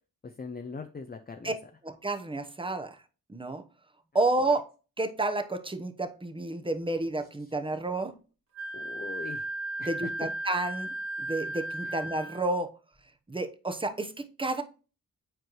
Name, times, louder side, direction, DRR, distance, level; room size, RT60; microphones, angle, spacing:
voice 1, 0.2-1.5 8.7-9.5 9.8-10.1 11.8-11.9, left 4 dB, 25° left, 0.6 m, -41 dB
voice 2, 1.8-3.0 3.3-3.6 4.1-4.7 5.0-8.1 9.9-10.9 11.2-12.7 13.3-14.6, right 2 dB, 15° right, 0.9 m, -30 dB
Wind instrument woodwind instrument, 8.5-12.4, right 1 dB, 45° right, 2.0 m, -35 dB
7.7 x 4.5 x 3.1 m
cardioid pair, 55°, 38 cm